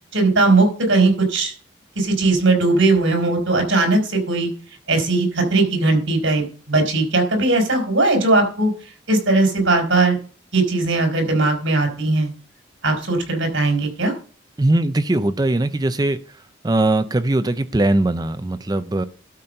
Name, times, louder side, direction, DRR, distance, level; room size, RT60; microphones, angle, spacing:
voice 1, 0.1-1.5 2.0-4.5 4.9-8.7 9.1-10.2 10.5-12.3 12.8-14.1, right 2 dB, 80° right, 3 dB, 4.0 m, -18 dB
voice 2, 14.6-16.2 16.6-19.0, right 2 dB, 20° right, 12 dB, 0.4 m, -20 dB
12.5 x 4.3 x 6.6 m, 0.40 s
head